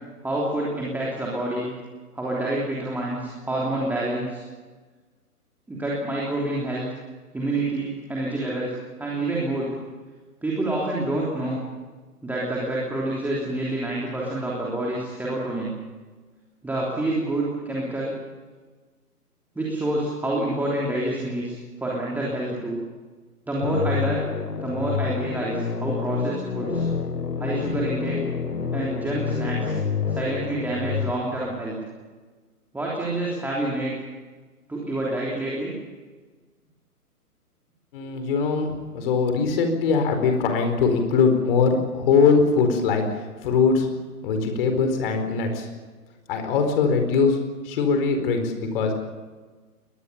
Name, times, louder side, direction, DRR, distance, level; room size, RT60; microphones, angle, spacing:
voice 1, 0.2-1.7 2.1-4.4 5.7-6.9 7.3-9.7 10.4-11.6 12.2-15.8 16.6-18.1 19.5-22.8 23.5-24.3 24.6-26.9 27.4-28.2 28.7-29.8 30.1-31.8 32.7-34.0 34.7-35.7, right 1 dB, 5° right, -5 dB, 3.3 m, -27 dB
sound 1, 23.6-31.1, left 5 dB, 85° left, 2.1 m, -28 dB
voice 2, 37.9-43.0 43.4-43.9 44.2-45.7 46.3-47.4 47.6-49.0, left 5 dB, 35° left, 6 dB, 4.5 m, -21 dB
22.0 x 20.5 x 7.0 m, 1.4 s
figure-of-eight pair, 135°, 47 cm